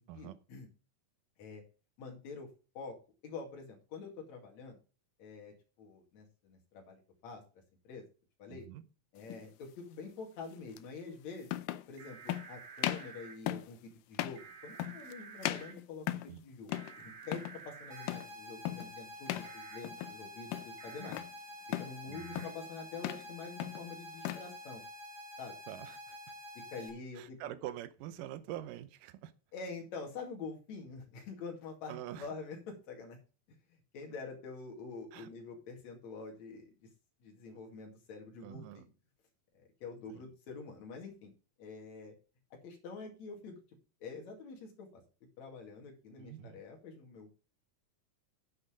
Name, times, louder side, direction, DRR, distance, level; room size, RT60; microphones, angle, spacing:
voice 1, 0.1-0.7 1.4-1.6 2.0-2.5 2.7-3.0 3.2-4.8 5.2-7.4 7.8-8.0 8.4-8.7 9.1-11.5 11.9-16.7 17.0-21.2 21.8-24.8 25.4-25.5 26.7-27.4 29.5-33.2 33.7-36.7 37.2-38.8 39.5-41.3 41.6-42.1 42.5-43.6 44.0-45.0 45.4-47.3, left 4 dB, 50° left, 1 dB, 3.4 m, -46 dB
voice 2, 8.5-8.8 16.3-16.4 22.1-22.5 25.7-26.2 27.2-29.3 31.9-32.3 35.1-35.3 38.4-38.9 40.1-40.2 46.2-46.6, right 12 dB, 75° right, 13 dB, 2.3 m, -45 dB
sound 1, 9.3-9.5 10.8-10.9 11.5-11.9 12.3-12.5 12.8-13.1 13.5-13.7 14.1-14.4 14.8-15.1 15.4-16.4 16.7-17.0 17.2-17.6 18.1-18.3 18.7-18.9 19.3-19.5 19.8-20.2 20.5-21.3 21.7-22.0 22.3-22.6 22.9-23.3 23.6-24.5, left 14 dB, 80° left, 2.1 m, -37 dB
sound 2, 12.0-13.3 14.4-15.7 16.7-18.1 19.4-19.8 20.8-21.1 22.1-22.5, right 6 dB, 55° right, 3.1 m, -51 dB
sound 3, 17.9-26.9, left 1 dB, 30° right, 3.5 m, -48 dB
9.9 x 6.7 x 5.1 m, 0.35 s
omnidirectional pair, 4.2 m